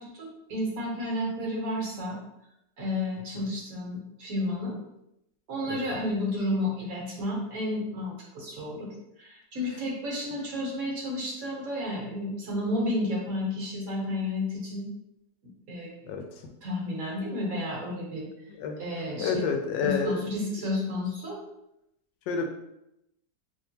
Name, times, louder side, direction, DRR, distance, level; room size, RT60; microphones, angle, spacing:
voice 1, 0.0-2.2 2.8-4.8 5.5-8.9 9.2-14.9 15.7-15.9 16.6-18.3 18.8-19.5 19.8-21.4, left 1 dB, 60° right, -3 dB, 1.3 m, -31 dB
voice 2, 18.5-18.8 19.2-20.2 22.3-22.4, left 5 dB, 85° left, 5 dB, 1.2 m, -29 dB
3.5 x 2.9 x 2.7 m, 0.84 s
omnidirectional pair, 1.9 m